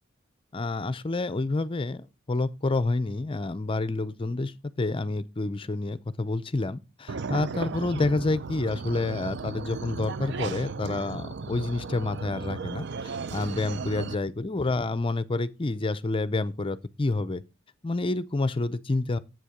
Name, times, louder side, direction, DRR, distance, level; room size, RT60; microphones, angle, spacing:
voice 1, 0.5-17.4 17.8-19.2, left 2 dB, 25° left, 0.5 m, -28 dB
sound 1, 7.1-14.2, right 4 dB, 60° right, 0.5 m, -35 dB
8.3 x 7.7 x 5.0 m
head